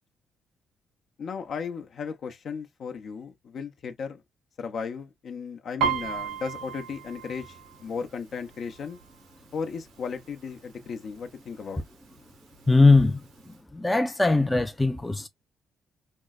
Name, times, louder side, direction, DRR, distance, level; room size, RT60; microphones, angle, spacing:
voice 1, 1.2-4.2 4.6-9.0 9.5-11.8, left 5 dB, 60° left, 0.7 m, -35 dB
Piano, 5.8-9.4 9.8-10.2 10.5-11.2 11.8-11.9 12.1-13.1 13.5-13.6, right 7 dB, 90° right, 0.8 m, -33 dB
voice 2, 12.7-13.2 13.7-15.3, left 3 dB, 10° left, 0.4 m, -20 dB
4.4 x 2.0 x 2.3 m
cardioid pair, 90°, 0 cm